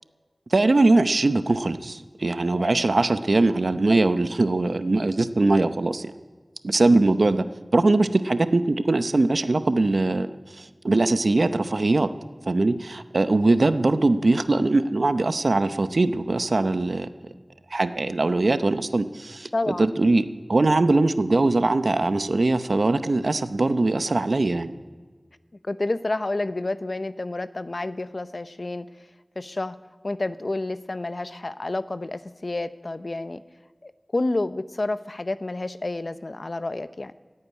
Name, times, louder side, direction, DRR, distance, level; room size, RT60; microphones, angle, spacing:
voice 1, 0.5-6.1 6.6-7.4 7.7-10.3 10.6-12.1 12.5-17.1 17.7-24.7, right 2 dB, 80° right, 11 dB, 0.7 m, -21 dB
voice 2, 19.5-19.9 25.6-28.9 29.4-29.8 30.0-33.4 33.8-37.1, left 2 dB, 65° left, 13 dB, 0.6 m, -29 dB
15.5 x 8.7 x 9.7 m, 1.5 s
wide cardioid pair, 45°, 0 cm